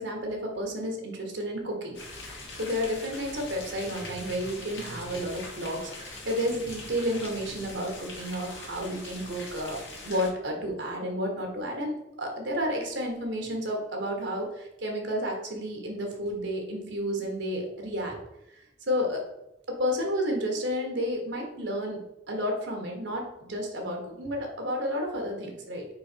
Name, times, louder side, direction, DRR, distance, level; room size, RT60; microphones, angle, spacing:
voice 1, 0.0-2.0 2.6-18.2 18.9-19.2 19.7-22.0 22.3-25.9, equal, 75° right, 1 dB, 1.6 m, -31 dB
sound 1, 1.9-10.3, left 2 dB, 75° left, 1.8 m, -42 dB
5.0 x 4.7 x 4.5 m, 0.86 s
head